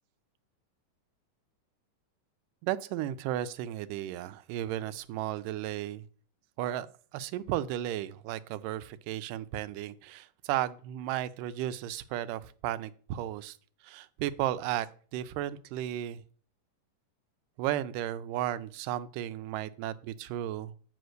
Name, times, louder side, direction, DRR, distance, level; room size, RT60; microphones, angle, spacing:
voice 1, 2.6-6.1 6.6-6.9 7.1-13.6 13.8-14.9 15.1-16.2 17.6-20.7, right 12 dB, 90° right, 14 dB, 2.2 m, -34 dB
7.9 x 5.1 x 6.3 m, 0.44 s
omnidirectional pair, 3.7 m